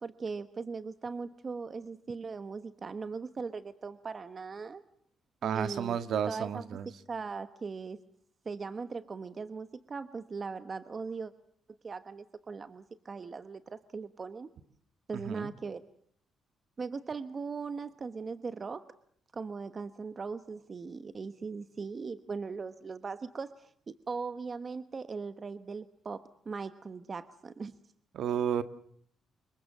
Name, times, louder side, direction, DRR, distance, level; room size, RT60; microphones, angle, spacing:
voice 1, 0.0-4.8 5.4-6.0 6.3-6.7 7.1-8.0 8.4-11.3 11.8-14.5 15.1-15.8 16.8-18.9 19.3-23.7 24.1-27.7, right 4 dB, 35° right, 12 dB, 1.1 m, -39 dB
voice 2, 5.4-6.9 15.1-15.5 28.1-28.6, right 8 dB, 70° right, 12 dB, 1.6 m, -32 dB
26.0 x 22.5 x 7.3 m, 0.62 s
cardioid pair, 90°, 0 cm